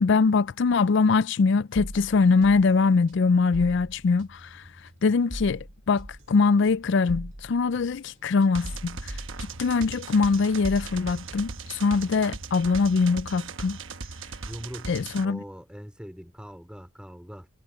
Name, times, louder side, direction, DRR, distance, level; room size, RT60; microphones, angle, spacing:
voice 1, 0.0-4.6 5.0-9.1 9.6-13.8 14.9-15.4, left 4 dB, 60° left, 0.4 m, -22 dB
sound 1, 1.7-10.1 10.4-12.3, equal, 35° right, 2.5 m, -42 dB
sound 2, 8.5-15.2, right 4 dB, 70° right, 1.1 m, -39 dB
voice 2, 14.4-15.0 15.2-17.5, equal, 5° right, 3.3 m, -41 dB
head